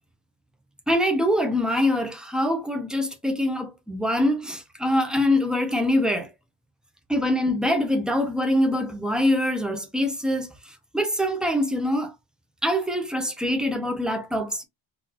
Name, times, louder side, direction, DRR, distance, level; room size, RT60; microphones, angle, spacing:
voice 1, 0.9-6.3 7.1-10.5 10.9-12.1 12.6-14.6, left 1 dB, ahead, 0.4 m, -24 dB
3.9 x 2.3 x 2.7 m
cardioid pair, 180°, 49 cm